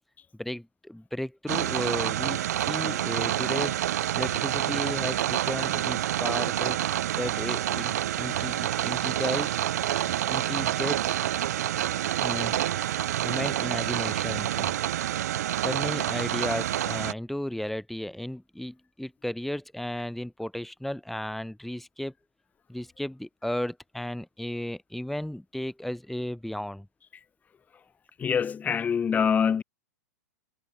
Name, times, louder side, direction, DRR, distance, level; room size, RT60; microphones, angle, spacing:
voice 1, 0.4-3.7 4.1-6.8 7.2-9.5 10.3-11.1 12.2-12.6 13.2-14.7 15.6-22.1 22.7-26.9, left 1 dB, ahead, 3.8 m, -34 dB
sound 1, 1.5-17.1, right 12 dB, 65° right, 2.0 m, -28 dB
voice 2, 28.2-29.6, left 7 dB, 15° left, 0.7 m, -24 dB
hypercardioid pair, 115°, 9 cm